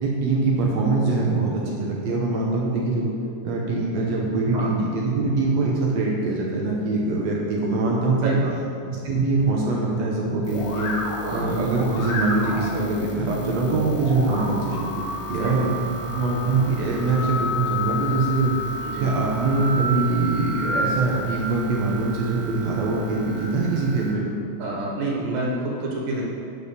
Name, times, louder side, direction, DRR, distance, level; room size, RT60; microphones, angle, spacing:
voice 1, 0.0-3.1 3.4-8.4 8.9-10.9 11.3-15.0 15.3-15.7 16.1-18.5 19.0-24.2, right 3 dB, 65° right, -3 dB, 1.9 m, -23 dB
voice 2, 4.5-4.8 8.2-8.5 11.2-11.5 14.3-14.5 15.4-15.6 18.8-19.1 24.6-26.3, right 2 dB, 90° right, -4 dB, 2.9 m, -28 dB
sound 1, 10.4-24.1, left 1 dB, 80° left, 3.1 m, -31 dB
8.4 x 4.9 x 6.7 m, 2.6 s
omnidirectional pair, 3.8 m